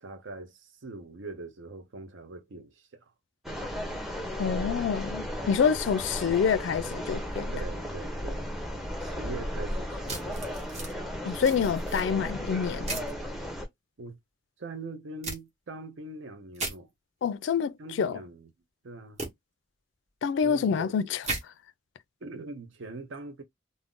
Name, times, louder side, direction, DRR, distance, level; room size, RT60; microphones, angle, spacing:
voice 1, 0.0-3.1 7.5-8.4 9.0-10.5 14.0-14.2 14.6-16.9 17.8-18.5 18.8-19.2 20.4-20.9 22.2-23.4, right 3 dB, 70° right, 0.6 m, -42 dB
sound 1, 3.4-13.7, equal, ahead, 0.5 m, -35 dB
voice 2, 4.4-7.5 11.2-13.0 17.2-18.2 20.2-21.2, left 6 dB, 65° left, 0.3 m, -27 dB
sound 2, 10.1-10.9 11.4-12.0 12.9-13.1 15.2-15.4 16.5-16.7 19.2-19.3 21.2-21.4, right 3 dB, 35° right, 0.9 m, -35 dB
2.5 x 2.0 x 3.5 m
head